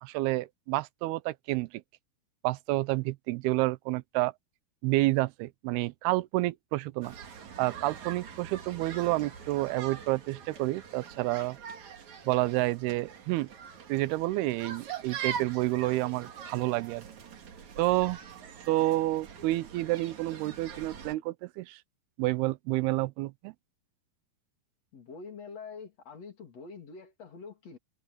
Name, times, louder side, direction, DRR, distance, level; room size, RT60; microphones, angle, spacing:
voice 1, 0.0-1.7 2.4-4.3 4.8-7.1 7.6-11.6 12.3-13.5 13.9-17.0 17.8-18.2 18.7-21.8 22.2-23.5, right 19 dB, 90° right, 2.7 m, -29 dB
sound 1, 7.0-21.1, right 8 dB, 50° right, 3.4 m, -43 dB
voice 2, 24.9-27.8, left 5 dB, 45° left, 4.1 m, -45 dB
omnidirectional pair, 4.5 m